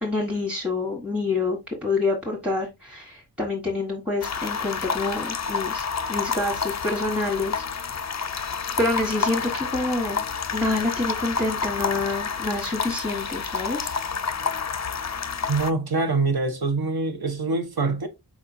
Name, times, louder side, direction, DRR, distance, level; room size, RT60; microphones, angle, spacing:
voice 1, 0.0-8.0 8.8-10.2 10.5-13.9, left 2 dB, 5° right, 1.3 m, -27 dB
sound 1, 4.2-15.7, left 5 dB, 40° left, 0.4 m, -29 dB
voice 2, 15.5-18.1, right 3 dB, 60° right, 1.0 m, -24 dB
4.7 x 4.3 x 2.5 m
wide cardioid pair, 95°, 43 cm